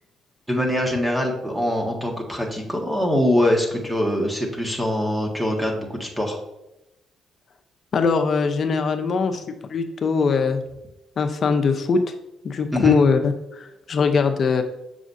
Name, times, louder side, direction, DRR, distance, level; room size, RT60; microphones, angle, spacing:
voice 1, 0.5-6.4 12.7-13.0, left 1 dB, 5° right, 0 dB, 1.7 m, -23 dB
voice 2, 7.9-10.6 11.2-12.0 12.4-14.6, left 5 dB, 50° left, 6 dB, 0.8 m, -21 dB
7.3 x 6.1 x 2.7 m, 0.89 s
cardioid pair, 90°, 0 cm